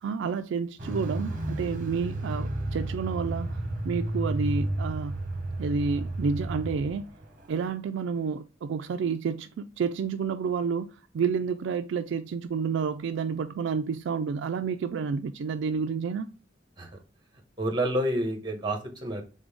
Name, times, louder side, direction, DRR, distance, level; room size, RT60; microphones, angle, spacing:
voice 1, 0.0-3.6 3.8-5.2 5.6-7.1 7.5-16.3, right 5 dB, 65° right, 0.3 m, -30 dB
Car, 0.8-7.0 7.2-7.3, right 2 dB, 45° right, 0.9 m, -32 dB
voice 2, 17.6-19.2, right 1 dB, 25° right, 1.2 m, -28 dB
3.9 x 3.8 x 3.5 m
head